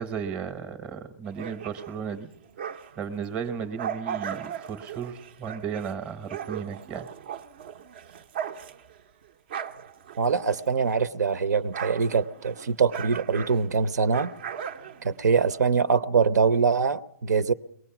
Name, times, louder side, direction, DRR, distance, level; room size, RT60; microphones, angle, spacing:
voice 1, 0.0-2.3 2.6-7.1, right 7 dB, 10° right, 10 dB, 1.0 m, -35 dB
sound 1, 1.2-3.1 3.5-11.1 11.3-15.6, right 8 dB, 30° right, 0.7 m, -38 dB
voice 2, 10.2-14.3 15.0-17.5, right 5 dB, 65° right, 15 dB, 0.8 m, -23 dB
22.5 x 19.0 x 5.9 m, 0.69 s
hypercardioid pair, 170°, 10 cm